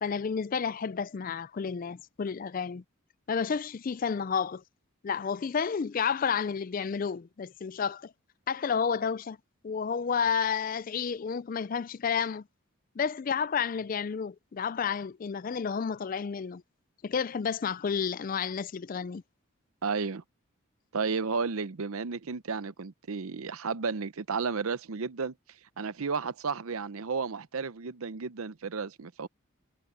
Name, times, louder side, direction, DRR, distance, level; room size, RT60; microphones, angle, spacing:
voice 1, 0.0-2.8 3.3-4.6 5.0-8.1 8.5-9.4 9.6-12.4 13.0-16.6 17.0-19.2, left 6 dB, 40° left, 0.3 m, -31 dB
voice 2, 19.8-20.2 20.9-25.3 25.8-29.3, right 5 dB, 85° right, 0.7 m, -33 dB
head